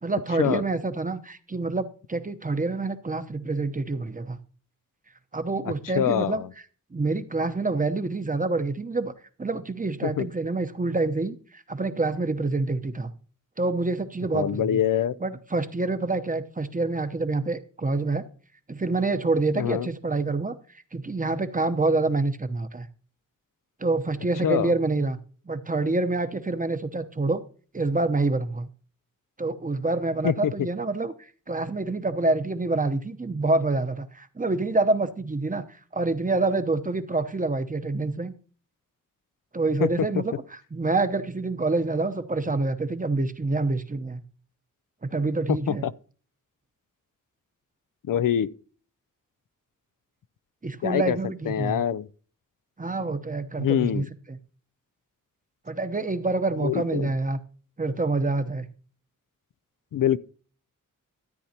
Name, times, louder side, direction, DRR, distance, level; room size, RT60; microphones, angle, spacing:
voice 1, 0.0-4.4 5.3-6.4 6.9-9.1 9.4-13.1 13.6-14.8 15.2-18.2 18.7-20.5 20.9-22.9 23.8-25.2 25.5-27.4 27.7-28.7 29.4-31.1 31.5-35.6 35.9-38.3 39.5-44.2 45.0-45.9 50.6-51.8 52.8-54.4 55.7-57.4 57.8-58.7, right 3 dB, 25° right, 0.9 m, -27 dB
voice 2, 5.7-6.5 10.0-10.3 14.3-15.1 19.5-19.9 24.4-24.7 30.2-30.5 39.8-39.9 40.2-40.3 45.5-45.9 48.0-48.5 50.8-51.2 51.5-52.1 53.6-54.1 56.6-57.1 59.9-60.2, left 10 dB, 80° left, 0.5 m, -25 dB
13.5 x 9.2 x 2.9 m
wide cardioid pair, 85°, 32 cm